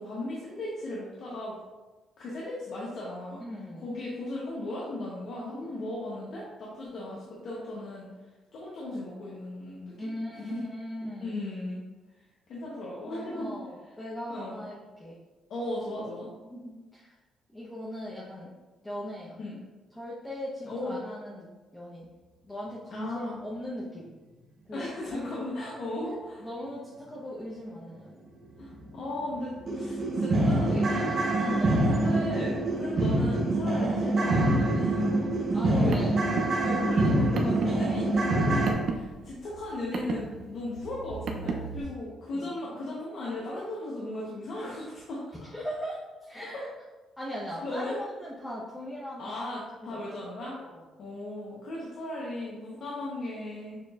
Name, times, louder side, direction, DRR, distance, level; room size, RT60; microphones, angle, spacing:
voice 1, 0.0-1.6 2.2-3.4 3.8-8.1 8.5-10.6 11.2-11.8 12.5-13.5 14.3-14.6 15.5-16.3 19.4-19.6 20.7-21.0 22.9-23.4 24.7-26.5 28.6-31.0 31.3-31.6 31.9-36.1 36.6-45.3 46.5-46.6 47.6-48.0 49.2-50.6 51.0-53.8, left 1 dB, 65° left, -6 dB, 0.9 m, -36 dB
voice 2, 3.4-3.8 10.0-11.3 13.0-15.2 16.4-17.1 17.5-18.5 18.8-19.4 19.9-21.5 21.7-22.1 22.4-24.1 24.7-24.9 26.4-28.2 31.0-31.1 31.4-31.8 35.5-36.2 42.3-42.5 45.5-46.7 47.2-49.4 49.9-50.1 50.5-50.8, equal, 15° left, -6 dB, 0.9 m, -39 dB
sound 1, 28.7-28.8 29.2-29.3 29.7-38.7, right 1 dB, 45° right, 0.8 m, -25 dB
Car, 35.6-41.8, right 4 dB, 65° right, 0.5 m, -36 dB
6.6 x 3.0 x 2.4 m, 1.2 s
cardioid pair, 90°, 0 cm